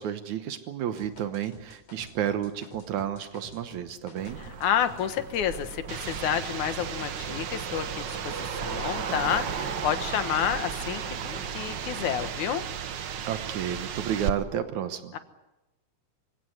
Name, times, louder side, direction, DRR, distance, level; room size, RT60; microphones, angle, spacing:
voice 1, 0.0-4.4 13.2-15.1, right 10 dB, 80° right, 10 dB, 2.4 m, -31 dB
sound 1, 1.0-6.5 6.8-7.5, left 2 dB, 60° left, 4.9 m, -49 dB
sound 2, 4.2-12.3, right 5 dB, 45° right, 1.7 m, -38 dB
voice 2, 4.4-12.6 15.1-15.2, left 9 dB, 80° left, 10 dB, 2.8 m, -30 dB
sound 3, 5.9-14.3, right 8 dB, 60° right, 1.1 m, -35 dB
26.0 x 16.5 x 9.4 m, 1.0 s
omnidirectional pair, 3.4 m